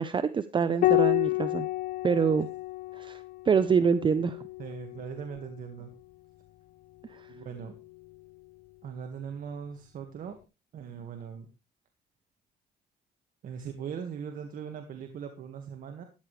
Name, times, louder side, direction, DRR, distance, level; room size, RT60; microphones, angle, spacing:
voice 1, 0.0-1.7 2.0-2.5 2.9-3.2 3.5-4.4 7.1-7.2, right 6 dB, 30° right, 13 dB, 0.7 m, -25 dB
Piano, 0.8-5.7 7.3-8.1, left 19 dB, 60° left, 0.5 m, -30 dB
voice 2, 4.6-5.9 7.3-7.8 8.8-10.4 10.7-11.5 13.4-16.0, right 7 dB, 55° right, 5 dB, 1.8 m, -40 dB
13.5 x 11.0 x 3.3 m, 0.30 s
cardioid pair, 110°, 17 cm